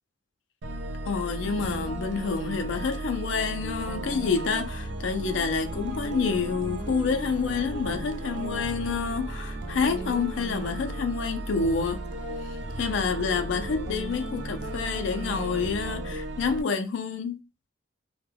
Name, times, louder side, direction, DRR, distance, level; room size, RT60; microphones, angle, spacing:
sound 1, 0.6-16.6, right 1 dB, 60° right, 0.4 m, -35 dB
voice 1, 1.0-12.0 12.4-17.4, left 5 dB, 70° left, 0.4 m, -28 dB
2.2 x 2.1 x 3.2 m
head